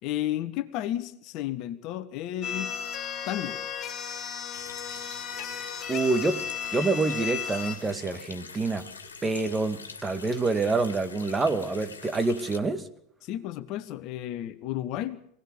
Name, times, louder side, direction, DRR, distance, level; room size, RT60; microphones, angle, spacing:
voice 1, 0.0-2.8 3.3-3.7 13.2-15.3, left 13 dB, 50° left, 12 dB, 1.4 m, -32 dB
sound 1, 2.4-7.8, left 8 dB, 30° left, 4.2 m, -34 dB
Water tap faucet, 4.5-12.6, left 5 dB, 85° left, 2.1 m, -45 dB
voice 2, 5.9-6.4 6.7-8.9 9.2-12.9, right 3 dB, 15° right, 9 dB, 2.1 m, -27 dB
24.0 x 18.0 x 6.9 m, 0.69 s
figure-of-eight pair, 80°, 0 cm